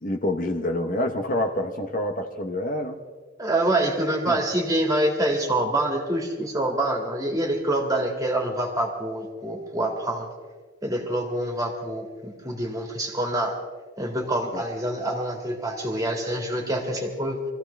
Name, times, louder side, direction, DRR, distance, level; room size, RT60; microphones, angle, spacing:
voice 1, 0.0-3.0 4.3-4.4 14.5-14.6, left 1 dB, 40° left, 5 dB, 1.0 m, -27 dB
voice 2, 3.4-10.3 10.8-13.5 14.0-17.4, right 1 dB, 15° right, 1 dB, 2.2 m, -26 dB
24.0 x 15.0 x 3.4 m, 1.5 s
head